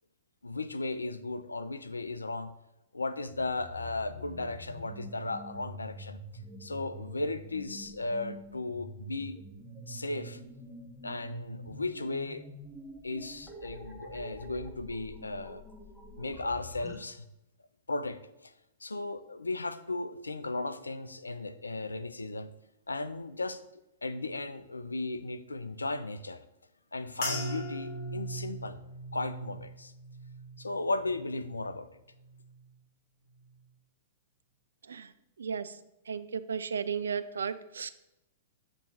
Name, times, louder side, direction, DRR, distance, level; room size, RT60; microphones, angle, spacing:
voice 1, 0.4-2.5 2.9-6.2 6.6-9.4 9.9-10.4 11.0-12.4 13.0-15.6 16.2-17.3 17.9-18.5 18.8-22.5 22.9-23.6 24.0-26.4 26.9-28.8 29.1-29.9 30.6-31.9, left 2 dB, 80° left, 12 dB, 0.4 m, -36 dB
sound 1, 3.3-17.0, right 1 dB, ahead, 0.9 m, -47 dB
sound 2, 27.2-31.7 32.1-32.7 33.3-33.5, right 1 dB, 45° left, 1.5 m, -40 dB
voice 2, 35.4-35.8 36.1-37.9, right 6 dB, 70° right, 13 dB, 0.3 m, -34 dB
7.0 x 3.0 x 5.2 m, 0.89 s
figure-of-eight pair, 105°, 0 cm